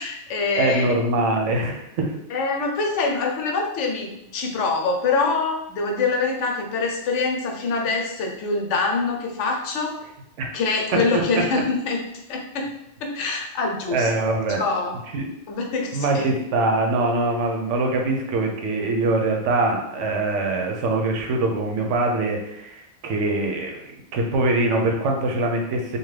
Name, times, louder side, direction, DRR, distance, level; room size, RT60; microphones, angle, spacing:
voice 1, 0.0-1.0 2.3-10.0 10.5-12.7 13.0-14.1 14.6-15.0 15.5-16.3, left 4 dB, 80° left, 2 dB, 0.9 m, -25 dB
voice 2, 0.6-2.1 10.4-10.5 13.9-14.6 15.1-15.3 15.9-26.0, right 2 dB, 90° right, 2 dB, 1.0 m, -23 dB
2.7 x 2.2 x 3.2 m, 0.80 s
omnidirectional pair, 1.2 m